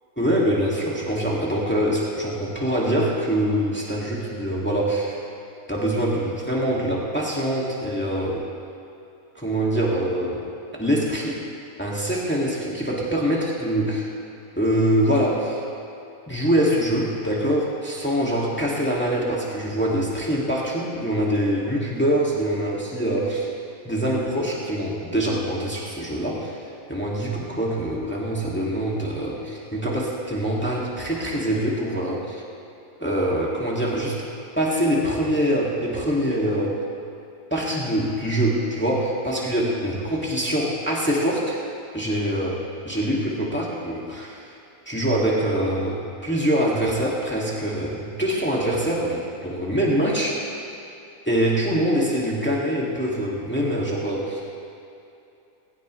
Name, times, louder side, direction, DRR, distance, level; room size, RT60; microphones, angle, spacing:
voice 1, 0.2-5.2 5.7-8.5 9.4-10.4 10.7-11.4 11.8-14.1 14.6-15.6 16.3-23.5 23.8-26.6 26.9-32.4 33.0-34.2 34.6-36.8 37.5-41.6 41.9-44.5 44.9-50.4 51.3-54.5, right 1 dB, 10° left, -5 dB, 2.1 m, -24 dB
19.5 x 17.0 x 3.2 m, 2.7 s
omnidirectional pair, 1.5 m